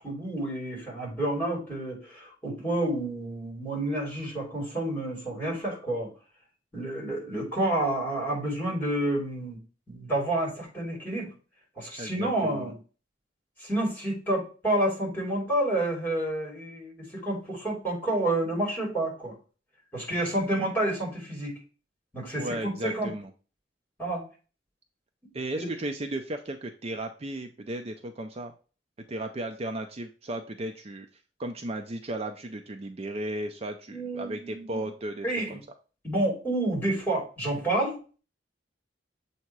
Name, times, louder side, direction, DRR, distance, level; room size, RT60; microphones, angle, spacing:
voice 1, 0.0-6.1 6.7-9.6 9.9-11.3 11.8-12.7 13.6-19.3 19.9-21.6 22.1-23.1 24.0-24.2 25.5-25.7 33.9-34.9 35.2-35.6 36.0-38.0, right 1 dB, 10° left, -2 dB, 3.3 m, -29 dB
voice 2, 12.0-12.7 22.4-23.3 25.3-28.5 29.1-31.1 31.4-35.6, right 1 dB, 35° right, 6 dB, 0.5 m, -35 dB
7.4 x 2.9 x 4.6 m, 0.36 s
head